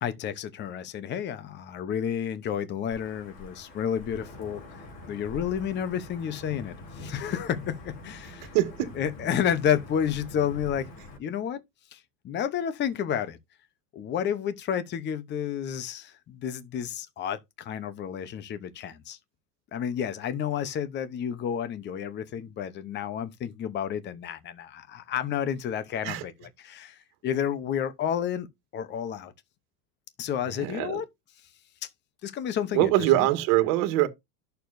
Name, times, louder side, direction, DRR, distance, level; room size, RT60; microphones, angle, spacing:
voice 1, 0.0-4.8 5.0-8.5 8.9-10.9 11.2-11.6 11.9-13.4 13.9-19.2 19.7-28.5 28.7-29.3 30.2-31.0 31.8-31.9 32.2-33.3, left 8 dB, 20° left, 0.8 m, -31 dB
Wind / Thunder / Rain, 2.9-11.2, left 2 dB, 45° left, 3.7 m, -44 dB
voice 2, 8.5-8.9 26.0-26.2 30.5-31.0 32.7-34.1, right 15 dB, 55° right, 1.9 m, -23 dB
11.0 x 6.8 x 2.6 m
supercardioid pair, 150°, 47 cm